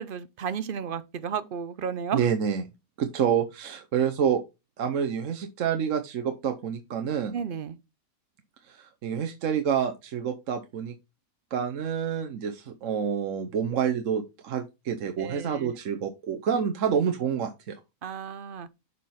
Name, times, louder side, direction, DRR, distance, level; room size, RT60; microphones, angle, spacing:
voice 1, 0.0-2.3 7.3-7.8 15.2-15.7 18.0-18.7, right 7 dB, 50° right, 0.7 m, -33 dB
voice 2, 2.1-2.6 3.0-4.4 4.8-7.3 8.7-10.9 11.5-17.8, right 7 dB, 65° right, 1.2 m, -28 dB
6.8 x 4.9 x 5.6 m
omnidirectional pair, 1.5 m